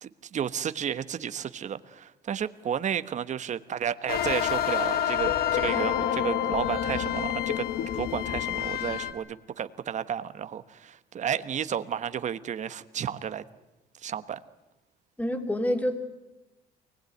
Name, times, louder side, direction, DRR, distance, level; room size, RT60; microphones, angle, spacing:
voice 1, 0.0-7.7 7.9-13.4 14.0-14.4, right 8 dB, 45° right, 12 dB, 1.2 m, -32 dB
sound 1, 4.1-9.1, left 10 dB, 70° left, 1.6 m, -28 dB
voice 2, 15.2-15.9, equal, 10° left, 5 dB, 3.0 m, -27 dB
24.0 x 20.0 x 9.4 m, 1.0 s
cardioid pair, 110°, 17 cm